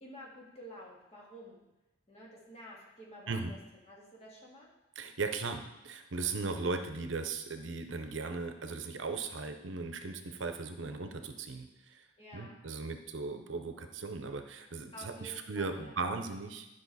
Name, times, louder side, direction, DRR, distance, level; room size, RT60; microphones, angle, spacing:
voice 1, 0.0-1.6 2.1-3.6 3.9-4.7 12.2-12.6 14.9-15.9, equal, 30° left, -4 dB, 2.2 m, -50 dB
voice 2, 5.0-12.0 12.3-16.7, right 4 dB, 75° right, 7 dB, 0.8 m, -37 dB
11.5 x 5.4 x 4.1 m, 0.99 s
head